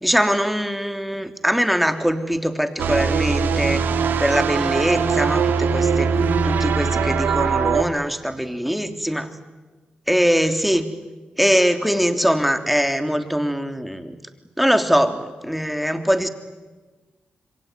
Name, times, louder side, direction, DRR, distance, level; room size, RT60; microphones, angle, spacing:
voice 1, 0.0-3.8 4.2-6.1 6.4-9.3 10.1-10.9 11.4-14.1 14.6-16.3, equal, ahead, 7 dB, 3.2 m, -22 dB
sound 1, 2.8-7.8, right 5 dB, 85° right, 2.4 m, -21 dB
26.5 x 23.0 x 9.7 m, 1.3 s
supercardioid pair, 45°, 3 cm